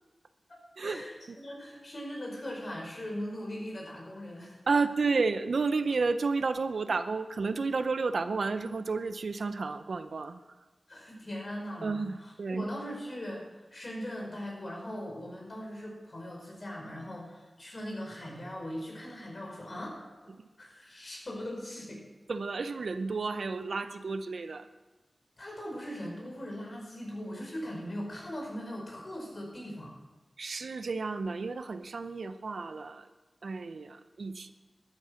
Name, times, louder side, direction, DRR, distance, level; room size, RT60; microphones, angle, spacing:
voice 1, 0.5-4.6 10.9-13.4 13.7-19.9 20.2-20.3 20.6-22.0 25.4-30.0, equal, 50° left, -1 dB, 5.0 m, -40 dB
voice 2, 4.7-10.4 11.8-12.6 22.3-24.7 30.4-33.0 33.4-34.5, right 4 dB, 85° right, 10 dB, 0.7 m, -31 dB
12.5 x 9.7 x 6.4 m, 1.1 s
wide cardioid pair, 70°, 0 cm